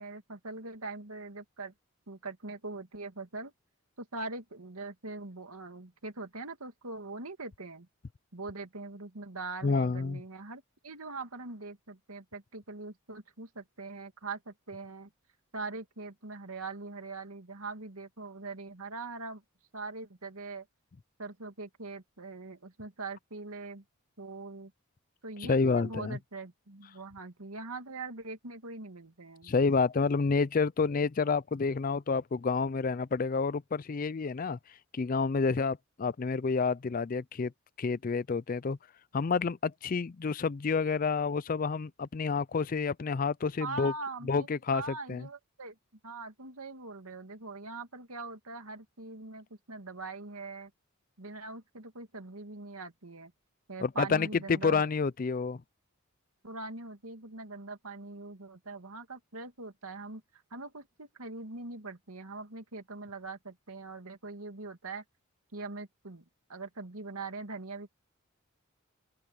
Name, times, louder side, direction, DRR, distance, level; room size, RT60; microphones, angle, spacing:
voice 1, 0.0-1.7 2.1-3.5 4.0-7.9 8.3-15.1 15.5-19.4 19.7-20.7 21.2-23.8 24.2-24.7 25.2-29.5 43.6-45.8 46.0-50.7 51.2-53.3 53.7-54.8 56.4-60.2 60.5-65.0 65.5-66.2 66.5-67.9, right 3 dB, 85° right, 2.4 m, -42 dB
voice 2, 9.6-10.2 25.4-26.2 29.4-34.6 34.9-37.5 37.8-38.8 39.1-43.9 44.3-44.8 45.1-45.3 53.8-55.6, left 4 dB, 40° left, 0.4 m, -29 dB
open air
head